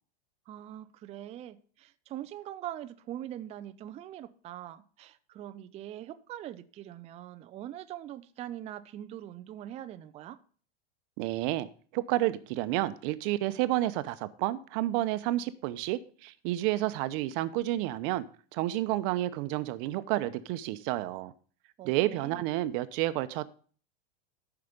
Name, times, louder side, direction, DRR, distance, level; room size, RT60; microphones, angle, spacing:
voice 1, 0.5-10.4 21.8-22.4, right 12 dB, 20° right, 0.4 m, -42 dB
voice 2, 11.2-11.7 11.9-18.3 18.5-21.3 21.8-23.4, right 16 dB, 50° right, 0.8 m, -30 dB
13.5 x 5.8 x 5.1 m
supercardioid pair, 145°, 33 cm